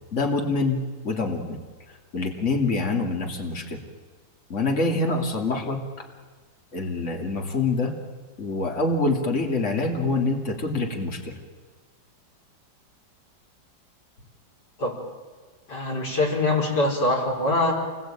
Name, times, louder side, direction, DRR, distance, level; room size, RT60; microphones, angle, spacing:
voice 1, 0.1-1.6 2.1-3.8 4.5-6.1 6.7-7.9 8.4-11.4, left 3 dB, 40° left, 2 dB, 3.1 m, -25 dB
voice 2, 15.7-17.7, left 2 dB, 60° left, -1 dB, 5.8 m, -23 dB
27.5 x 21.0 x 9.0 m, 1.5 s
omnidirectional pair, 2.1 m